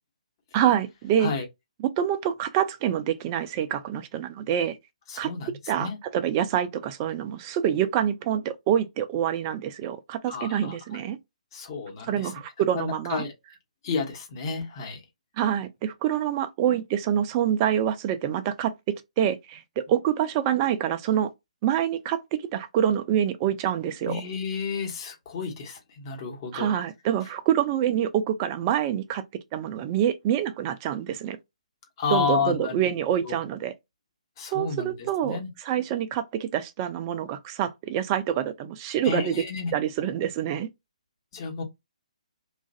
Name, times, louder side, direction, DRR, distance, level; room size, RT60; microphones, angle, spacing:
voice 1, 0.5-1.3 1.8-4.8 5.2-5.3 5.7-11.2 12.1-13.2 15.4-18.7 19.2-21.3 21.6-24.2 26.5-29.2 29.5-31.4 32.1-33.7 34.5-39.4 39.7-40.7, right 10 dB, 25° right, 0.4 m, -26 dB
voice 2, 5.1-5.5 5.8-6.0 10.3-10.8 11.5-12.3 12.7-13.3 13.8-15.0 24.0-26.7 32.0-32.8 33.2-33.4 34.4-34.9 35.2-35.5 39.0-39.7 41.3-41.6, left 5 dB, 35° left, 1.1 m, -30 dB
3.0 x 2.5 x 2.6 m
figure-of-eight pair, 140°, 4 cm